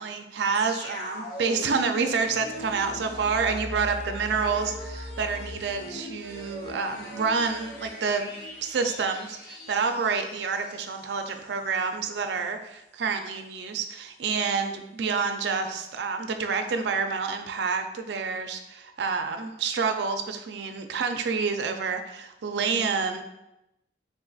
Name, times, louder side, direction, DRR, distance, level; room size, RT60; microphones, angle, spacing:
voice 1, 0.0-8.3 8.6-23.2, right 5 dB, 80° right, 6 dB, 0.4 m, -28 dB
sound 1, 0.6-11.4 11.7-11.8, left 1 dB, 60° left, 0.9 m, -40 dB
3.8 x 3.7 x 2.3 m, 0.89 s
head